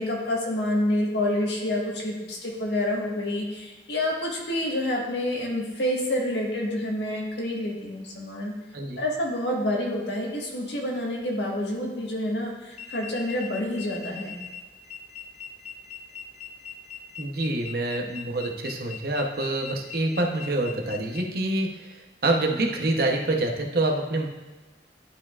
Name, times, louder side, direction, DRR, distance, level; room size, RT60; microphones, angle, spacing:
voice 1, 0.0-8.5 9.0-14.3, left 1 dB, 80° left, -1 dB, 1.5 m, -28 dB
sound 1, 12.7-21.2, left 8 dB, 40° left, 0.6 m, -41 dB
voice 2, 17.2-24.3, right 2 dB, 55° right, 2 dB, 0.9 m, -26 dB
11.5 x 4.8 x 2.4 m, 1.2 s
head